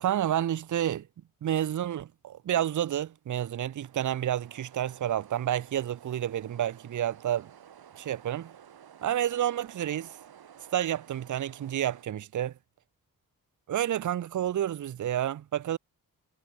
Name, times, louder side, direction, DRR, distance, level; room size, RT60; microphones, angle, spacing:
voice 1, 0.0-1.1 1.4-7.5 8.0-8.5 9.0-10.1 10.7-12.5 13.7-15.8, right 11 dB, 55° right, 0.7 m, -30 dB
sound 1, 3.4-12.0, right 9 dB, 85° right, 3.6 m, -53 dB
wide cardioid pair, 140°, 36 cm